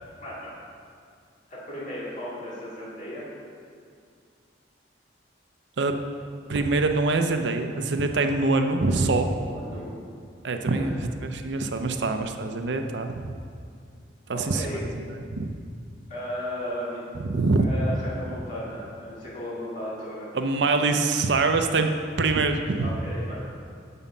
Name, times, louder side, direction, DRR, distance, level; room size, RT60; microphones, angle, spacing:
voice 1, 0.2-0.6 1.5-3.2 8.1-8.3 9.3-10.0 10.8-10.9 14.3-14.8 16.1-17.0 17.6-20.3 22.8-23.4, equal, 40° left, -8 dB, 2.2 m, -35 dB
voice 2, 6.5-9.4 10.4-10.9 11.2-13.3 14.3-14.7 15.3-15.5 17.2-17.6 20.3-21.9 22.2-22.9, right 3 dB, 70° right, 6 dB, 0.5 m, -24 dB
7.1 x 5.5 x 5.5 m, 2.3 s
head